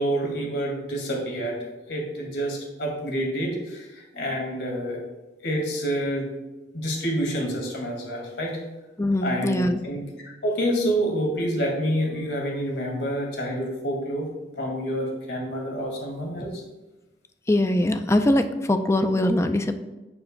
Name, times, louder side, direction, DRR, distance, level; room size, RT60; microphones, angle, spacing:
voice 1, 0.0-5.0 5.4-6.3 6.7-8.6 9.2-10.1 10.4-14.3 14.6-16.6, equal, 85° left, 0 dB, 2.2 m, -28 dB
voice 2, 9.0-9.8 17.5-19.8, left 1 dB, 15° left, 8 dB, 0.5 m, -22 dB
10.5 x 7.1 x 2.2 m, 1.1 s
head